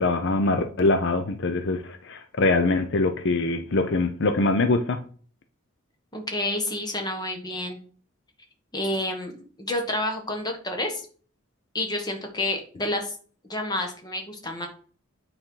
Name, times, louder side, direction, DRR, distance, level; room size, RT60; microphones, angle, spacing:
voice 1, 0.0-5.0, left 2 dB, 60° left, 7 dB, 0.6 m, -23 dB
voice 2, 6.1-7.8 8.7-11.1 11.7-13.1 13.4-14.7, left 1 dB, 20° left, 3 dB, 1.4 m, -29 dB
9.0 x 4.4 x 3.8 m, 0.43 s
head